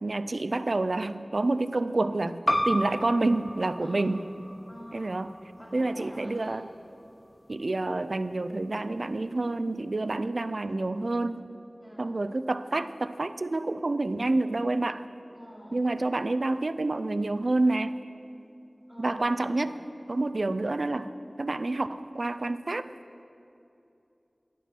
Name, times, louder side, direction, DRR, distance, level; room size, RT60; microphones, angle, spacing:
voice 1, 0.0-4.2 4.9-5.3 5.7-6.7 7.5-11.4 12.0-15.0 15.7-18.0 19.0-19.8 20.1-21.1 21.4-22.8, right 2 dB, 70° right, 12 dB, 0.3 m, -28 dB
sound 1, 2.5-7.6, equal, 15° left, 0.4 m, -34 dB
voice 2, 3.8-4.3 4.7-6.7 11.8-12.1 15.3-15.9 18.9-19.6, equal, ahead, -6 dB, 2.9 m, -47 dB
9.3 x 8.3 x 5.9 m, 2.7 s
wide cardioid pair, 55°, 0 cm